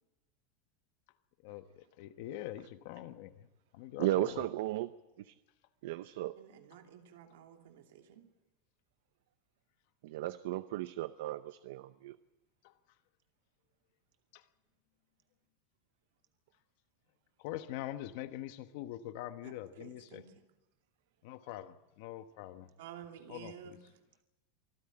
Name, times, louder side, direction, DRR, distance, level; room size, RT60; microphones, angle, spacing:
voice 1, 1.4-3.5 3.7-4.5 12.6-12.7 14.3-14.4 17.4-20.2 21.2-22.7 23.3-23.8, left 13 dB, 55° left, 10 dB, 1.3 m, -44 dB
voice 2, 4.0-4.9 5.2-5.3 5.8-6.3 10.0-12.2, right 16 dB, 70° right, 13 dB, 0.7 m, -35 dB
voice 3, 6.4-8.3 19.4-20.3 22.8-23.8, right 9 dB, 85° right, 4 dB, 3.0 m, -52 dB
24.5 x 14.5 x 8.7 m, 1.0 s
supercardioid pair, 170°, 0 cm